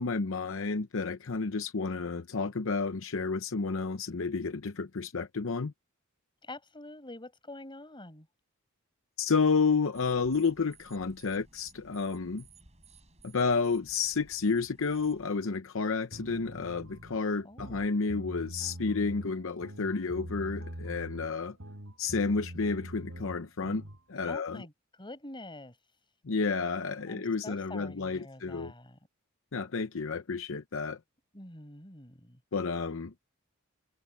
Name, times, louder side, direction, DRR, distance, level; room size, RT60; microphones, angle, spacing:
voice 1, 0.0-5.7 9.2-12.4 13.2-21.6 22.0-23.8 24.1-24.6 26.2-28.7 29.5-31.0 32.5-33.1, left 4 dB, 70° left, 0.8 m, -31 dB
voice 2, 6.4-8.3 17.4-17.8 24.3-24.7 25.0-25.8 27.1-29.0 31.3-32.4, left 2 dB, 25° left, 6.3 m, -46 dB
sound 1, 9.9-15.3, right 3 dB, 30° right, 5.9 m, -58 dB
sound 2, 16.1-24.0, equal, 70° right, 5.9 m, -43 dB
head